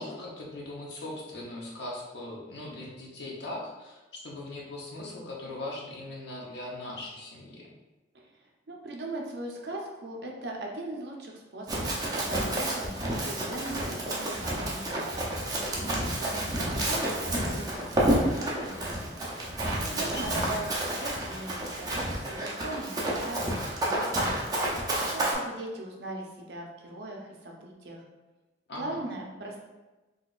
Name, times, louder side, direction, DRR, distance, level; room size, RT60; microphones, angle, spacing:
voice 1, 0.0-7.7 19.7-20.4 28.7-29.0, left 2 dB, 65° left, -3 dB, 0.8 m, -40 dB
voice 2, 8.1-12.9 13.2-15.8 16.2-19.2 19.9-28.0 28.7-29.6, right 2 dB, 65° right, -1 dB, 0.6 m, -39 dB
Run, 11.7-25.3, right 1 dB, 20° right, 0.5 m, -30 dB
3.9 x 2.4 x 2.4 m, 1.1 s
head